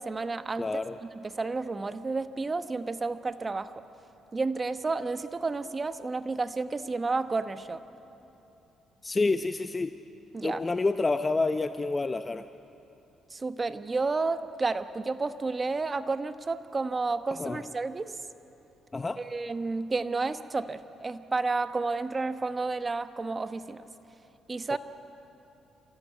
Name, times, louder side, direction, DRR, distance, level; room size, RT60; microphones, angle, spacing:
voice 1, 0.0-3.8 4.3-7.8 10.3-10.6 13.3-18.1 19.2-23.9 24.5-24.8, right 3 dB, 30° right, 11 dB, 1.1 m, -31 dB
voice 2, 0.6-0.9 9.0-9.9 10.4-12.4 17.4-17.6 18.9-19.2, left 3 dB, 25° left, 9 dB, 0.7 m, -28 dB
26.5 x 15.5 x 9.3 m, 3.0 s
supercardioid pair, 65°, 0 cm